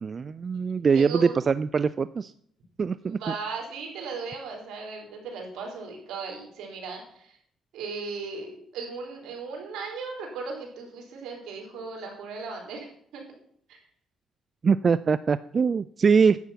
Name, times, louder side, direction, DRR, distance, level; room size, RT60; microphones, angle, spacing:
voice 1, 0.0-2.3 2.8-3.2 14.6-16.4, right 5 dB, 40° right, 15 dB, 0.3 m, -23 dB
voice 2, 0.9-1.4 3.0-7.4 7.7-13.2 13.7-13.8, right 4 dB, 80° right, 1 dB, 3.8 m, -37 dB
10.5 x 8.2 x 5.7 m, 0.65 s
cardioid pair, 90°, 0 cm